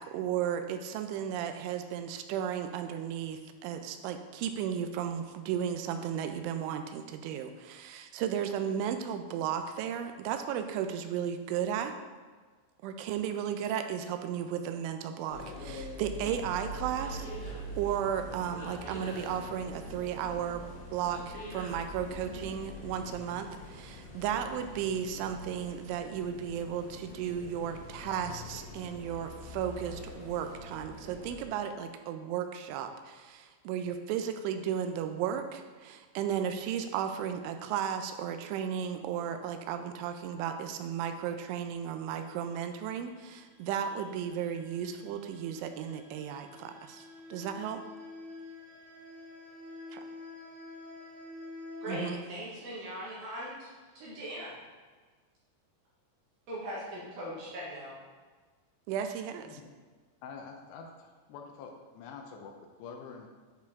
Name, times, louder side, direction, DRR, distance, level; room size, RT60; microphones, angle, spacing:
voice 1, 0.0-11.9 12.8-20.6 20.9-47.1 47.3-47.8 49.9-50.0 51.9-52.2 58.9-59.6, right 9 dB, 85° right, 7 dB, 2.9 m, -34 dB
sound 1, 15.3-31.5, equal, 40° left, 2.0 m, -44 dB
sound 2, 43.1-52.1, left 3 dB, 60° left, 3.2 m, -48 dB
voice 2, 51.8-53.5 54.0-54.5 56.5-57.9, equal, 65° right, -7 dB, 2.4 m, -40 dB
voice 3, 60.2-63.3, left 5 dB, 85° left, 2 dB, 2.4 m, -46 dB
10.0 x 4.5 x 3.5 m, 1.4 s
omnidirectional pair, 5.7 m